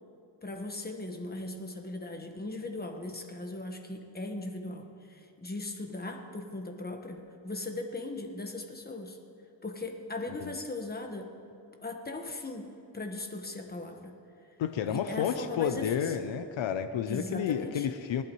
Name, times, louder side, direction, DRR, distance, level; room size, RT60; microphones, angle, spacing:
voice 1, 0.4-9.2 9.6-14.2 14.9-16.1 17.1-17.9, left 2 dB, 20° left, 4 dB, 1.3 m, -39 dB
voice 2, 14.6-18.2, left 8 dB, 90° left, 9 dB, 0.7 m, -31 dB
18.5 x 11.5 x 3.1 m, 2.6 s
wide cardioid pair, 95°, 45 cm